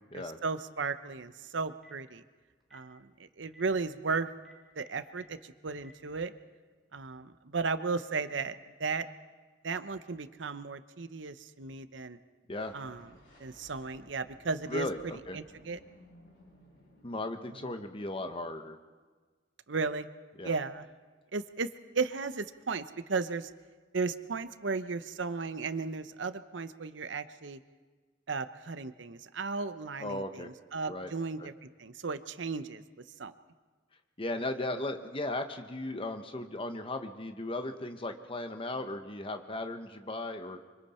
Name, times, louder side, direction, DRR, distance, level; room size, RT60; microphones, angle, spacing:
voice 1, 0.4-2.2 2.7-4.3 4.8-6.3 6.9-8.5 8.8-9.1 9.6-12.2 12.7-13.1 13.4-15.8 17.6-17.7 19.7-20.1 20.4-20.9 21.3-21.7 21.9-23.5 23.9-27.6 28.3-32.8 33.2-33.3, right 4 dB, 80° right, 12 dB, 0.8 m, -35 dB
Telephone, 1.8-2.0 2.6-2.8 3.4-3.6 4.3-5.2 5.7-5.9, equal, ahead, 3.4 m, -56 dB
sound 1, 12.6-17.7, left 1 dB, 75° left, 5.7 m, -59 dB
voice 2, 14.7-15.4 17.0-18.8 19.8-19.9 20.4-20.5 30.0-30.5 30.9-31.1 31.4-31.5 34.2-40.6, left 2 dB, 30° left, 7 dB, 1.2 m, -36 dB
25.0 x 24.5 x 4.4 m, 1.4 s
head